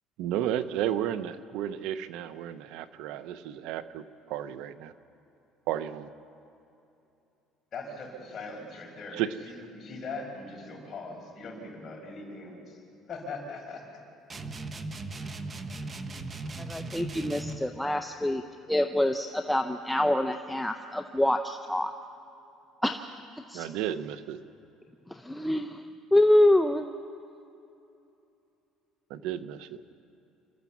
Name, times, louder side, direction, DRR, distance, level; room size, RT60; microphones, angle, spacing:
voice 1, 0.2-4.9 5.7-6.1 9.2-9.3 23.5-24.4 29.1-29.8, right 11 dB, 75° right, 12 dB, 0.8 m, -33 dB
voice 2, 7.7-12.8 13.1-13.9, left 3 dB, 35° left, 0 dB, 5.3 m, -40 dB
sound 1, 14.3-17.7, right 2 dB, 25° right, 1.1 m, -38 dB
voice 3, 16.7-18.4 18.7-21.9 22.8-23.0 23.5-23.7 25.1-25.8 26.1-26.8, left 1 dB, 5° left, 5 dB, 0.6 m, -25 dB
28.0 x 13.5 x 7.2 m, 2.8 s
cardioid pair, 140°, 0 cm